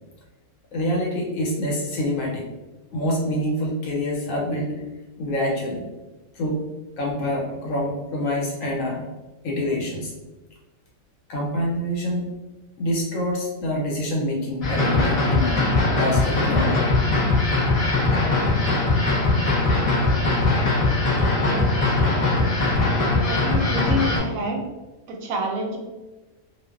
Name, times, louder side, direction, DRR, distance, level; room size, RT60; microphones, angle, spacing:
voice 1, 0.7-2.4 2.9-4.8 5.2-5.9 6.3-6.6 7.0-9.1 9.4-10.1 11.3-12.2 12.8-16.9, left 1 dB, 80° left, -2 dB, 1.1 m, -26 dB
sound 1, 14.6-24.2, left 2 dB, 65° left, 0.3 m, -21 dB
voice 2, 23.3-24.6 25.1-25.8, equal, 90° right, 1 dB, 1.0 m, -28 dB
2.5 x 2.2 x 2.3 m, 1.1 s
omnidirectional pair, 1.4 m